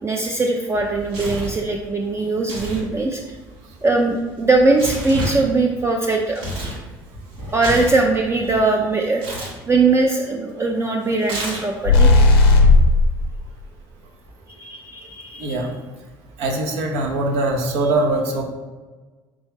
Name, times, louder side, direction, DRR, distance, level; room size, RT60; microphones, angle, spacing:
voice 1, 0.0-3.2 3.8-6.4 7.5-12.1 14.5-15.6, right 3 dB, 20° right, 1 dB, 0.4 m, -20 dB
Tearing, 0.7-1.6 2.4-2.8 3.1-6.8 7.1-8.6 9.2-9.5 11.2-11.9, equal, 85° right, 1.1 m, -30 dB
sound 1, 11.8-13.1, left 3 dB, 85° left, 0.5 m, -12 dB
voice 2, 15.4-15.7 16.4-18.4, right 2 dB, 70° right, 2 dB, 0.7 m, -22 dB
3.5 x 3.0 x 3.3 m, 1.3 s
hypercardioid pair, 65°, 12 cm